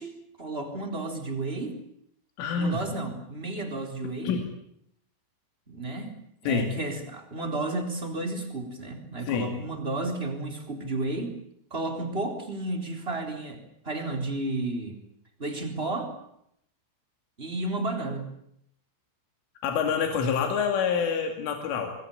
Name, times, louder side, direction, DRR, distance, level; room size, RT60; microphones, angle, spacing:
voice 1, 0.0-1.8 2.6-4.3 5.7-11.4 11.7-15.0 15.4-16.1 17.4-18.3, right 2 dB, 15° right, 4 dB, 3.6 m, -32 dB
voice 2, 2.4-2.8 4.2-4.4 6.5-6.7 9.3-9.5 19.6-21.9, left 6 dB, 85° left, 4 dB, 5.0 m, -27 dB
26.0 x 21.5 x 8.7 m, 0.74 s
omnidirectional pair, 5.5 m